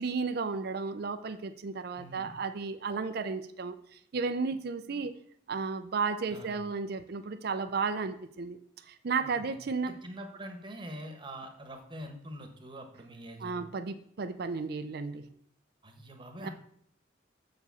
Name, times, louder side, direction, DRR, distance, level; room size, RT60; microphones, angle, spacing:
voice 1, 0.0-5.1 5.5-8.6 8.9-9.9 13.4-15.3 16.4-16.5, right 4 dB, 50° right, 10 dB, 0.5 m, -33 dB
voice 2, 2.0-2.3 6.3-6.6 9.2-9.6 9.8-13.7 15.8-16.5, right 1 dB, 25° right, 4 dB, 1.2 m, -44 dB
6.8 x 4.9 x 6.9 m, 0.66 s
head